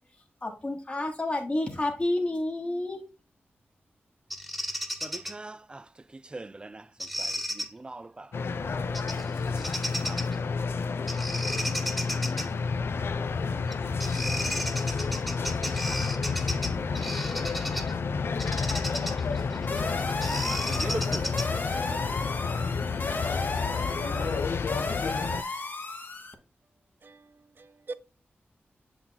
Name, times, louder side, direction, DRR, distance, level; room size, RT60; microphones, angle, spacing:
voice 1, 0.4-3.0, left 2 dB, 30° left, 1.2 m, -29 dB
Bird vocalization bird call bird song, 4.3-5.3 7.0-7.7 8.9-9.3 9.6-10.4 11.1-12.5 13.7-13.8 14.0-17.9 18.4-21.7, equal, ahead, 1.3 m, -34 dB
voice 2, 5.0-8.3 8.6-9.8 10.0-10.2 11.8-12.0 13.4-13.8 14.9-15.0 15.3-15.4 16.4-17.1 18.9-19.1 19.8-21.9, right 2 dB, 25° right, 0.4 m, -43 dB
sound 1, 8.3-25.4, left 5 dB, 65° left, 0.5 m, -30 dB
sound 2, 19.7-26.3, left 3 dB, 50° left, 1.2 m, -35 dB
voice 3, 23.1-23.6 24.0-24.5 27.0-27.9, right 4 dB, 55° right, 0.7 m, -44 dB
7.2 x 6.1 x 2.2 m
cardioid pair, 75°, 4 cm